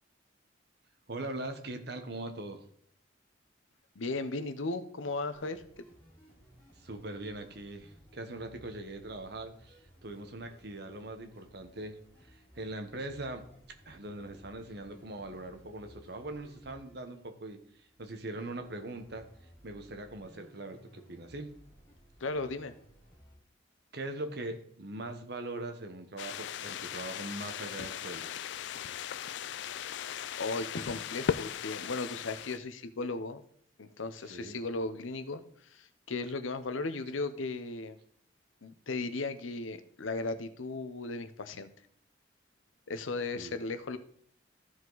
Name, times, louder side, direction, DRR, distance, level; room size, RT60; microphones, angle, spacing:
voice 1, 1.1-2.6 6.8-12.0 12.3-13.4 13.8-17.6 18.0-19.3 19.6-21.6 23.9-28.3 34.2-34.6 43.3-43.6, right 2 dB, 55° right, 7 dB, 1.1 m, -41 dB
voice 2, 4.0-5.8 22.2-22.7 30.1-33.4 33.8-38.0 38.6-41.7 42.9-44.0, left 3 dB, 85° left, 10 dB, 0.8 m, -36 dB
sound 1, 5.3-23.3, equal, 10° left, 3.0 m, -59 dB
sound 2, 26.2-32.6, left 8 dB, 65° left, 0.3 m, -38 dB
14.0 x 5.0 x 3.9 m, 0.62 s
head